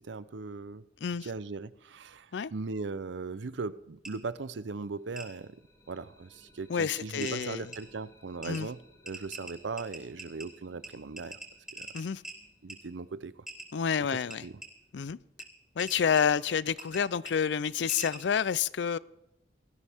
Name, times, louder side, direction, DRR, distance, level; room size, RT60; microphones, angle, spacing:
voice 1, 0.0-0.8 1.2-5.6 5.9-8.8 9.0-11.4 11.7-11.9 12.6-13.5 14.1-14.6, right 4 dB, 85° right, 16 dB, 0.6 m, -39 dB
sound 1, 4.0-4.1 5.2-5.3 6.6-6.7 7.2-7.3 7.7-7.8 8.4-8.6 9.1-10.5 10.8-10.9 11.2-12.4 12.7-12.8 13.5-13.7 14.3-14.7 15.4-15.5 15.8-16.2 16.8-17.0 17.3-17.4 17.9-18.2, right 2 dB, 5° right, 3.8 m, -42 dB
sound 2, 4.7-14.5, left 1 dB, 20° left, 3.6 m, -63 dB
voice 2, 6.7-7.6 8.4-8.7 11.9-12.2 13.7-14.4 14.9-15.2 15.8-19.0, left 7 dB, 75° left, 19 dB, 0.4 m, -29 dB
19.0 x 14.5 x 3.5 m, 0.84 s
head